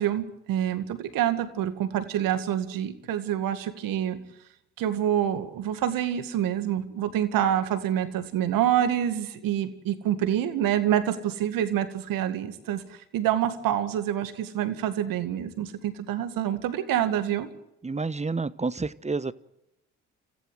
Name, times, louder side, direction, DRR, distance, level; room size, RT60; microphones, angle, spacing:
voice 1, 0.0-4.2 4.8-17.5, right 10 dB, 75° right, 10 dB, 2.2 m, -27 dB
voice 2, 17.8-19.3, right 4 dB, 20° right, 16 dB, 1.1 m, -29 dB
26.5 x 15.0 x 7.9 m, 0.84 s
hypercardioid pair, 50°, 34 cm